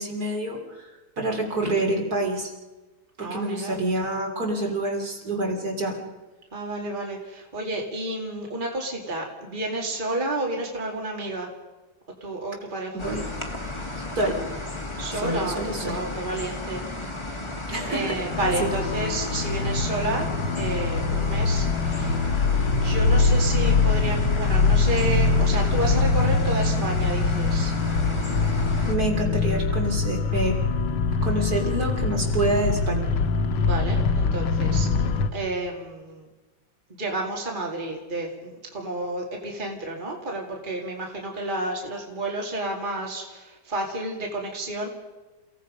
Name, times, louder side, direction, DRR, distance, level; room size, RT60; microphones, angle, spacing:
voice 1, 0.0-2.5 3.2-6.0 12.9-13.3 14.0-14.4 15.1-16.0 17.7-18.2 18.6-18.7 28.8-30.6 31.2-33.0, right 2 dB, 50° right, 1 dB, 3.8 m, -27 dB
voice 2, 3.2-3.8 6.5-11.5 12.2-13.0 15.0-16.8 17.9-20.3 20.6-22.4 22.7-27.7 33.6-34.9 35.3-36.3 36.9-44.9, right 2 dB, 25° right, -1 dB, 2.7 m, -30 dB
sound 1, 13.0-29.0, left 2 dB, 15° left, 2.0 m, -34 dB
sound 2, 18.3-35.3, left 4 dB, 85° left, 1.8 m, -23 dB
29.5 x 17.5 x 5.2 m, 1.2 s
omnidirectional pair, 2.1 m